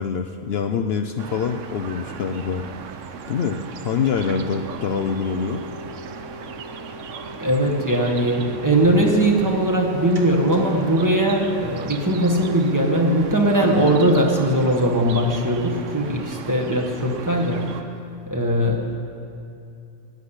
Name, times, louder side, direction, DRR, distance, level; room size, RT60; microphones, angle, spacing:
voice 1, 0.0-2.6 3.3-5.6, left 6 dB, 60° left, 6 dB, 0.8 m, -25 dB
sound 1, 1.2-17.8, right 6 dB, 85° right, 1.1 m, -37 dB
sound 2, 5.2-11.3, left 3 dB, 70° right, 1.4 m, -42 dB
voice 2, 7.4-17.7 18.3-18.8, right 1 dB, 15° right, -1 dB, 1.5 m, -20 dB
sound 3, 8.7-13.9, equal, 40° right, 1.6 m, -39 dB
11.5 x 8.2 x 9.8 m, 2.6 s
omnidirectional pair, 1.3 m